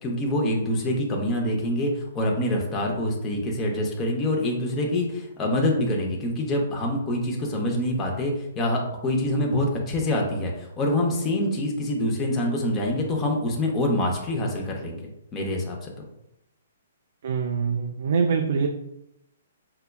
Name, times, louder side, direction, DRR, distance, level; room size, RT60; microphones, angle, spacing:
voice 1, 0.0-15.0 15.3-15.9, left 1 dB, 20° left, 0 dB, 0.7 m, -25 dB
voice 2, 17.2-18.7, right 5 dB, 65° right, 4 dB, 0.3 m, -24 dB
5.6 x 2.2 x 2.2 m, 0.83 s
hypercardioid pair, 150°, 0 cm